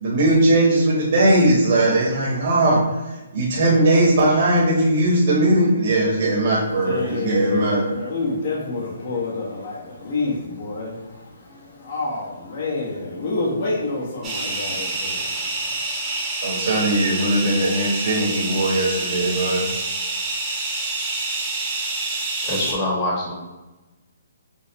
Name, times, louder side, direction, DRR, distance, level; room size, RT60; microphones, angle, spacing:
voice 1, 0.0-2.8 3.3-7.8 16.4-19.6, right 1 dB, 60° right, -4 dB, 1.1 m, -19 dB
voice 2, 6.6-15.8, left 3 dB, 50° left, -5 dB, 1.1 m, -28 dB
sound 1, 14.2-22.7, right 2 dB, 20° right, 0.9 m, -27 dB
voice 3, 22.4-23.3, left 1 dB, 25° left, -6 dB, 1.2 m, -24 dB
5.5 x 2.2 x 3.0 m, 1.1 s
hypercardioid pair, 150°, 0 cm